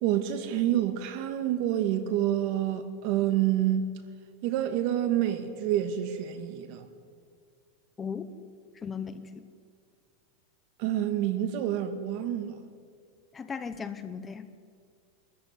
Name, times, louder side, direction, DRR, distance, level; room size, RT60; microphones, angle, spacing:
voice 1, 0.0-3.9 4.4-6.8 10.8-12.6, right 11 dB, 50° right, 2.2 m, -28 dB
voice 2, 8.0-8.3 8.8-9.5 13.3-14.5, left 6 dB, 15° left, 1.0 m, -37 dB
23.5 x 14.5 x 9.7 m
supercardioid pair, 150°, 0 cm